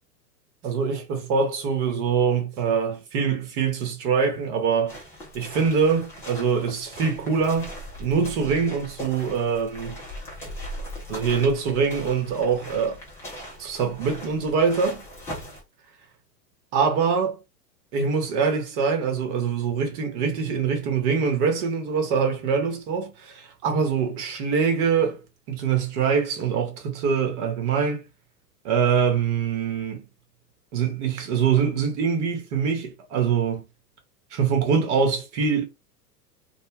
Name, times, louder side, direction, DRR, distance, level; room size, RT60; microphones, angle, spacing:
voice 1, 0.6-5.0 5.3-7.7 8.0-10.0 11.1-13.0 13.6-15.1 16.7-17.4 17.9-25.2 25.5-28.0 28.6-30.0 30.7-33.6 34.3-35.6, right 6 dB, 45° right, 1.1 m, -24 dB
sound 1, 4.9-15.6, equal, 5° left, 0.3 m, -39 dB
2.3 x 2.1 x 3.2 m
hypercardioid pair, 105°, 49 cm